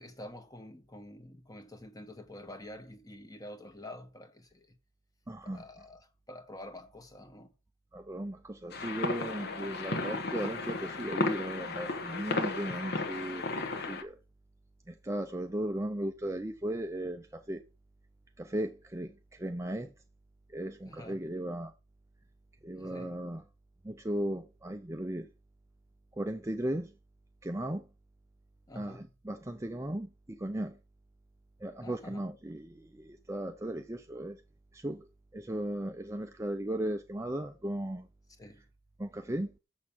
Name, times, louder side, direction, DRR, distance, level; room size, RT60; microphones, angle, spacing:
voice 1, 0.0-4.7 5.4-7.5 20.8-21.2 22.8-23.3 28.7-29.1 31.8-32.3 38.4-38.6, left 1 dB, 15° left, 1.2 m, -48 dB
voice 2, 5.3-5.8 7.9-13.5 13.9-14.2 14.9-17.6 18.4-19.9 20.5-21.7 22.6-23.5 23.8-25.3 26.1-26.9 27.4-27.9 28.7-30.8 31.6-34.4 34.7-35.1 35.3-38.1 39.0-39.5, right 1 dB, 15° right, 0.5 m, -36 dB
sound 1, 8.7-14.0, left 3 dB, 50° left, 1.2 m, -34 dB
7.3 x 6.4 x 7.1 m
head